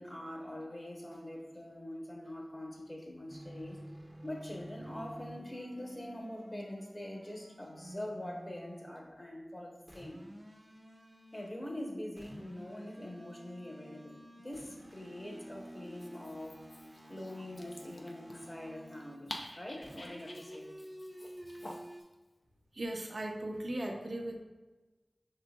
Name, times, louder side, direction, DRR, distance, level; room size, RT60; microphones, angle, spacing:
voice 1, 0.0-3.8 4.2-10.2 11.3-16.6 17.1-20.7, left 1 dB, 40° left, -1 dB, 1.1 m, -44 dB
sound 1, 3.3-9.0 9.9-11.6 12.2-19.3 19.8-22.0, equal, 25° right, 0.6 m, -51 dB
Dog, 15.8-22.1, left 1 dB, 65° left, 0.5 m, -50 dB
voice 2, 22.7-24.4, right 1 dB, 70° right, 2 dB, 0.6 m, -37 dB
5.7 x 3.8 x 2.4 m, 1.2 s
wide cardioid pair, 50°, 0 cm